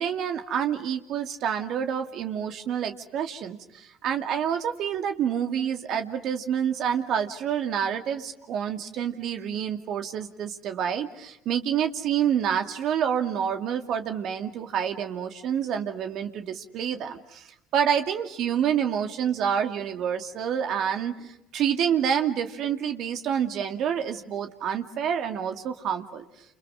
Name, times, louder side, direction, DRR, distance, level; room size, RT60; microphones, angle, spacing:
voice 1, 0.0-17.5 17.7-26.2, right 8 dB, 60° right, 6 dB, 2.6 m, -28 dB
29.0 x 29.0 x 6.5 m, 0.84 s
hypercardioid pair, 75°, 0 cm